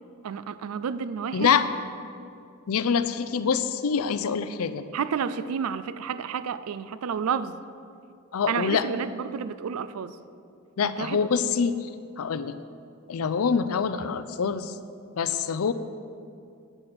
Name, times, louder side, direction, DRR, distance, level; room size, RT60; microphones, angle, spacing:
voice 1, 0.2-1.6 4.9-7.6 8.5-10.2 10.8-11.3, right 6 dB, 85° right, 14 dB, 0.4 m, -30 dB
voice 2, 1.3-1.7 2.7-4.8 8.3-8.9 10.8-11.8 12.2-12.6 13.1-14.7 15.2-15.7, left 6 dB, 85° left, 12 dB, 0.5 m, -25 dB
8.1 x 7.8 x 5.9 m, 2.5 s
head